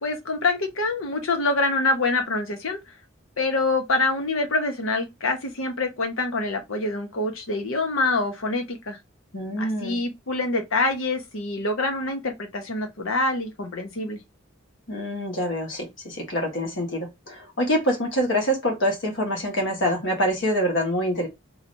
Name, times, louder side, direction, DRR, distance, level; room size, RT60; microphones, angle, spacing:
voice 1, 0.0-2.8 3.4-9.0 9.6-14.2, left 3 dB, 90° left, 0.9 m, -25 dB
voice 2, 9.3-10.0 14.9-21.3, equal, 70° left, 1.3 m, -25 dB
3.2 x 2.8 x 2.6 m
head